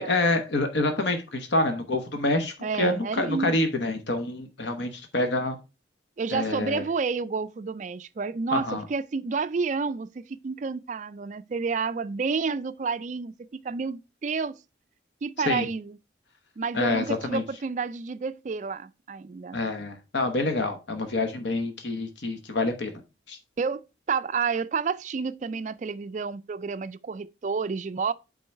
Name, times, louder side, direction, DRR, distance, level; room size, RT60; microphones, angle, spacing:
voice 1, 0.0-5.6 6.3-6.8 8.5-8.8 15.4-15.7 16.7-17.4 19.5-22.9 23.3-23.4, left 2 dB, 65° left, 1.0 m, -27 dB
voice 2, 2.6-3.6 6.2-14.5 15.2-16.0 16.6-19.6 23.6-28.1, right 5 dB, 40° right, 0.3 m, -30 dB
8.4 x 3.8 x 4.5 m
head